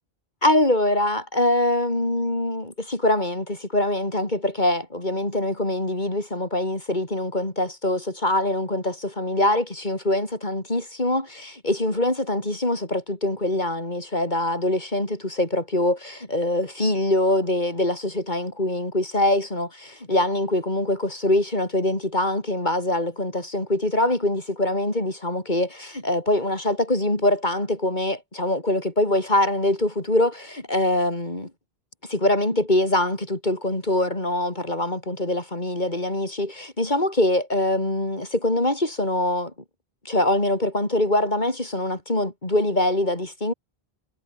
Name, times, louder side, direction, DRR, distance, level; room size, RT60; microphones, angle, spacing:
voice 1, 0.4-31.5 32.1-39.5 40.0-43.5, left 1 dB, 45° left, 4.7 m, -24 dB
omnidirectional pair, 1.0 m